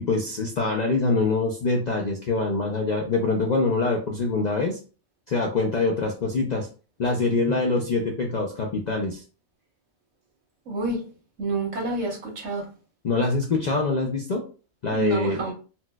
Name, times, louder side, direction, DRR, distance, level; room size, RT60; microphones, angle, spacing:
voice 1, 0.0-4.8 5.3-6.7 7.0-9.2 13.0-14.4 14.8-15.4, left 3 dB, 60° left, 0.4 m, -24 dB
voice 2, 10.7-11.0 11.4-12.7 14.9-15.5, right 2 dB, 85° right, 1.5 m, -28 dB
4.2 x 2.1 x 2.2 m
omnidirectional pair, 1.3 m